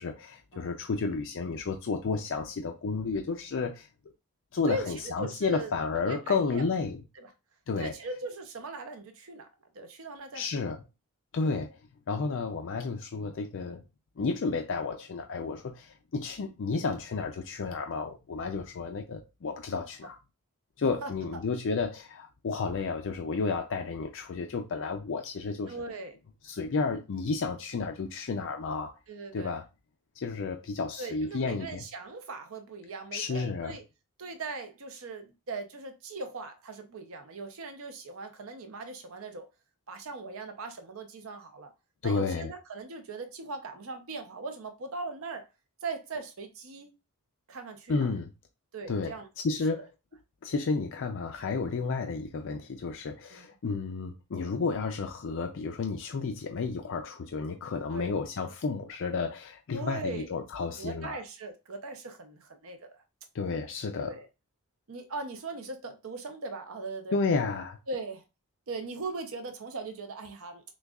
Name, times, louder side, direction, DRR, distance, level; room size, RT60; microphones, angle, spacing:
voice 1, 0.0-3.9 4.5-7.0 7.7-8.0 10.3-10.8 11.3-11.7 12.1-13.8 14.2-20.2 20.8-25.7 26.4-28.9 29.3-29.6 30.2-31.8 33.1-33.7 42.0-42.5 47.9-48.3 48.9-49.1 49.4-49.8 50.4-61.2 63.3-64.1 67.1-67.8, left 4 dB, 60° left, 0.4 m, -32 dB
voice 2, 4.7-5.7 6.0-6.6 7.2-7.3 7.8-9.5 9.7-10.6 11.4-11.5 21.0-21.1 25.7-26.2 29.1-29.6 31.0-33.8 34.2-39.5 39.9-41.7 42.0-45.5 45.8-46.9 47.5-48.1 48.7-49.3 49.7-49.9 53.3-53.4 57.9-58.1 59.7-60.4 60.8-63.0 64.0-64.3 64.9-67.2 67.9-68.2 68.7-70.6, right 3 dB, 65° right, 0.6 m, -39 dB
6.1 x 2.3 x 2.3 m
head